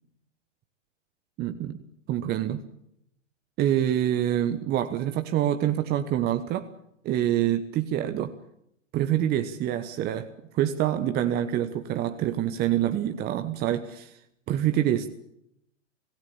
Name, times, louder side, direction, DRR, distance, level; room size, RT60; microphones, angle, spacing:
voice 1, 1.4-1.8 2.1-2.6 3.6-6.7 7.0-8.3 8.9-10.3 10.5-14.2 14.5-15.1, right 11 dB, 25° right, 8 dB, 1.2 m, -26 dB
25.0 x 16.5 x 8.7 m, 0.77 s
hypercardioid pair, 115°, 37 cm